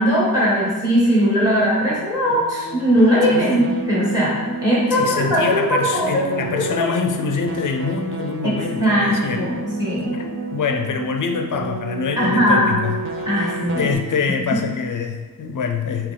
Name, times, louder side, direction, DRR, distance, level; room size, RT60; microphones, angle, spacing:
voice 1, 0.0-5.4 5.7-6.2 6.8-6.9 8.4-10.1 12.2-12.8 13.3-13.8, equal, 10° right, -7 dB, 1.5 m, -19 dB
sound 1, 1.9-13.9, right 3 dB, 35° right, 0.6 m, -31 dB
voice 2, 3.3-3.7 4.9-9.5 10.1-13.0 13.8-16.1, left 5 dB, 60° left, 5 dB, 0.5 m, -25 dB
5.2 x 3.0 x 3.3 m, 1.4 s
wide cardioid pair, 165°, 35 cm